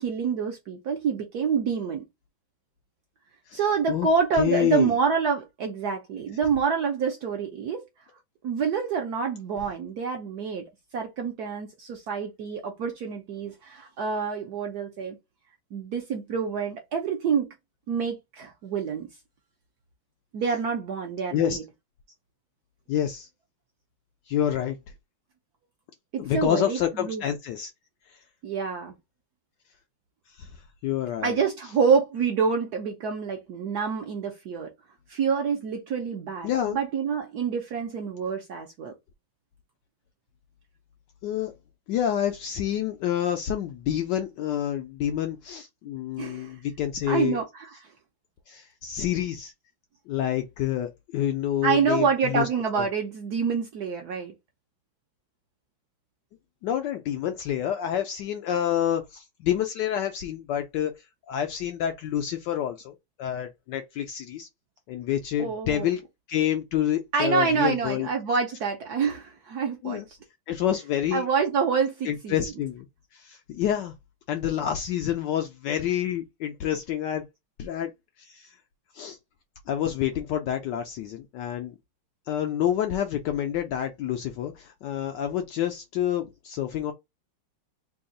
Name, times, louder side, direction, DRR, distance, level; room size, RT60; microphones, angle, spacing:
voice 1, 0.0-2.0 3.5-7.8 8.4-10.6 10.9-15.2 15.7-17.5 17.9-19.1 20.3-21.6 26.1-27.2 28.4-28.9 31.2-34.7 35.1-38.9 46.2-46.5 47.1-47.7 51.6-54.3 65.4-65.9 67.1-70.0 71.1-72.3, right 6 dB, 65° right, 1.0 m, -27 dB
voice 2, 4.4-4.9 21.3-21.6 22.9-23.3 24.3-24.8 26.2-27.7 28.1-28.2 30.3-31.4 36.4-36.8 41.2-41.5 41.9-47.4 48.5-49.5 50.1-52.5 52.8-52.9 56.6-60.9 61.3-64.5 64.9-66.0 66.3-68.1 69.8-70.1 70.5-71.2 72.0-72.9 73.1-73.9 74.3-77.2 77.6-77.9 78.2-78.6 78.9-79.2 79.7-81.7 82.3-86.9, left 10 dB, 75° left, 1.0 m, -28 dB
3.4 x 2.3 x 3.8 m
omnidirectional pair, 2.3 m